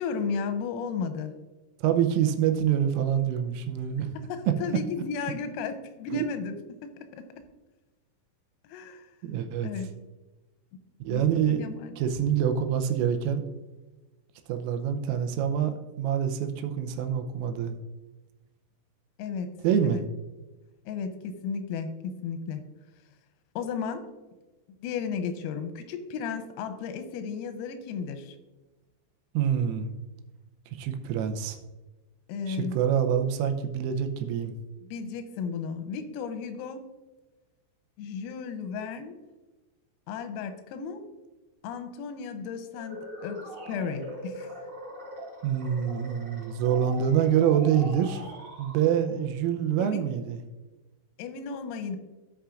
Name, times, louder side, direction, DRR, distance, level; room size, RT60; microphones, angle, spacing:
voice 1, 0.0-1.3 4.3-7.3 8.7-9.1 9.6-9.9 11.1-11.9 19.2-19.5 19.8-20.0 20.9-22.6 23.6-24.0 24.8-28.4 32.3-32.8 34.8-36.8 38.0-39.2 40.1-41.0 41.6-44.5 49.8-50.1 51.2-52.0, left 6 dB, 90° left, 9 dB, 3.4 m, -34 dB
voice 2, 1.8-4.1 6.1-6.2 9.2-9.7 11.0-11.6 12.0-13.4 14.5-17.7 19.6-20.0 29.3-29.9 30.7-31.6 32.5-34.5 45.4-48.2 48.6-50.4, right 9 dB, 85° right, 6 dB, 3.2 m, -26 dB
sound 1, 42.7-49.2, right 1 dB, 50° right, 1.3 m, -42 dB
16.5 x 5.6 x 2.5 m, 1.1 s
omnidirectional pair, 5.9 m